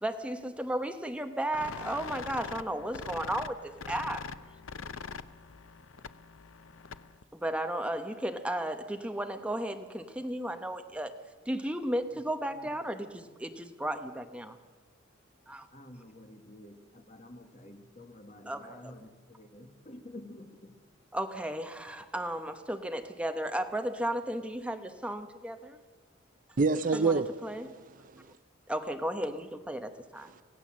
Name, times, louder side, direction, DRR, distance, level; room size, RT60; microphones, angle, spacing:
voice 1, 0.0-4.3 7.3-11.1 11.5-14.6 15.5-15.7 18.5-18.9 21.1-25.8 26.9-27.1 27.4-27.7 28.7-30.3, right 1 dB, 5° right, 1.0 m, -34 dB
sound 1, 1.5-7.2, left 5 dB, 90° left, 0.7 m, -43 dB
voice 2, 15.7-20.8, left 1 dB, 35° left, 1.7 m, -50 dB
voice 3, 26.6-28.4 30.2-30.4, right 4 dB, 40° right, 0.5 m, -29 dB
24.5 x 16.5 x 7.5 m
head